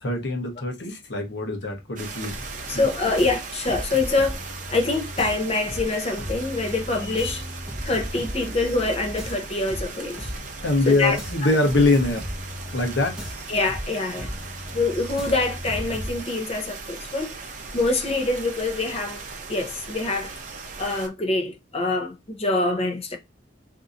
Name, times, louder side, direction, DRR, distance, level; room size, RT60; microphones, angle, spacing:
voice 1, 0.0-2.4 2.7-2.9 10.6-12.3 12.7-13.3, left 2 dB, 70° left, 0.9 m, -23 dB
sound 1, 2.0-21.1, right 4 dB, 45° right, 0.6 m, -38 dB
sound 2, 2.3-16.3, equal, 5° right, 1.1 m, -36 dB
voice 2, 2.7-4.4 4.7-7.4 7.8-10.2 10.9-11.2 13.5-14.3 14.7-17.4 17.7-19.2 19.5-20.3 20.8-23.2, left 3 dB, 30° left, 0.7 m, -25 dB
3.7 x 2.8 x 2.5 m
head